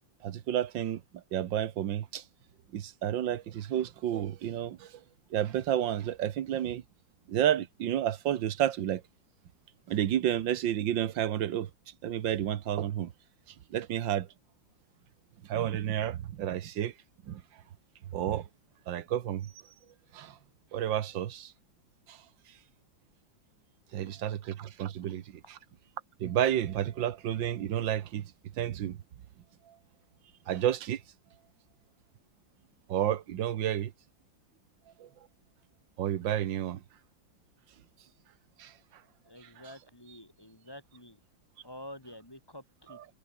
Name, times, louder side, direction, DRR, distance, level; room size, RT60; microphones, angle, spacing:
voice 1, 0.2-2.2 2.7-5.0 5.3-6.8 7.3-9.0 9.9-13.1 13.5-14.3 15.4-16.9 17.2-17.4 18.1-18.5 18.9-19.5 20.1-20.4 20.7-21.5 22.1-22.2 23.9-25.6 26.2-28.3 28.6-29.0 29.7-29.8 30.5-31.0 32.9-33.9 35.0-35.1 36.0-36.8 38.6-38.7 39.4-39.7 42.9-43.1, right 11 dB, 70° right, 1.8 m, -31 dB
voice 2, 39.3-41.2 41.6-43.0, left 1 dB, 10° left, 5.8 m, -48 dB
omnidirectional pair, 2.1 m